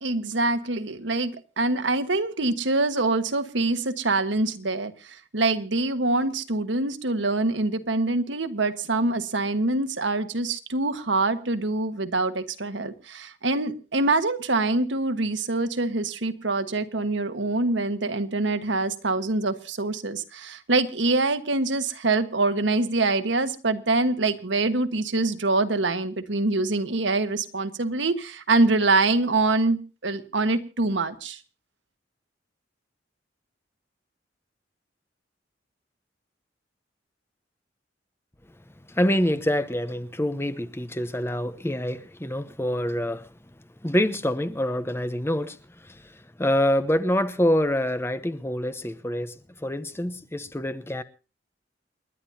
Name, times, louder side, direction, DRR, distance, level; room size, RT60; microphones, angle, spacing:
voice 1, 0.0-31.4, right 2 dB, 85° right, 1.4 m, -25 dB
voice 2, 38.9-43.3 43.8-45.6 45.8-46.1 46.4-49.3 49.6-51.0, left 1 dB, 15° left, 0.8 m, -26 dB
29.0 x 11.0 x 2.8 m
head